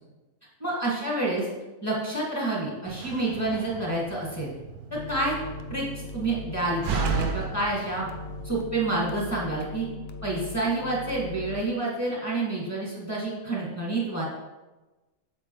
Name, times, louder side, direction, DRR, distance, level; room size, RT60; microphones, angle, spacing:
voice 1, 0.6-1.5 1.8-4.5 4.9-5.3 5.7-5.8 6.1-8.1 8.4-9.9 10.2-14.2, right 2 dB, 10° left, -6 dB, 2.1 m, -28 dB
Slam, 2.9-8.5, right 6 dB, 80° right, 1.2 m, -35 dB
sound 1, 4.9-11.7, left 3 dB, 60° left, 0.7 m, -40 dB
7.6 x 6.8 x 3.2 m, 1.1 s
omnidirectional pair, 1.6 m